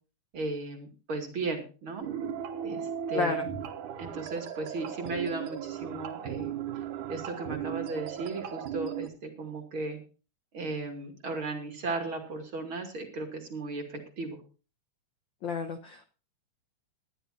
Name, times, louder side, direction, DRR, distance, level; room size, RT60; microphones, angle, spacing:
voice 1, 0.3-2.0 2.6-3.5 4.0-6.6 7.1-10.0 10.5-14.4, right 3 dB, 40° right, 3 dB, 3.0 m, -36 dB
sound 1, 2.0-9.1, right 9 dB, 75° right, 2.7 m, -36 dB
voice 2, 3.1-3.5 15.4-16.1, left 5 dB, 75° left, 7 dB, 1.0 m, -31 dB
19.5 x 12.0 x 2.8 m, 0.35 s
omnidirectional pair, 3.7 m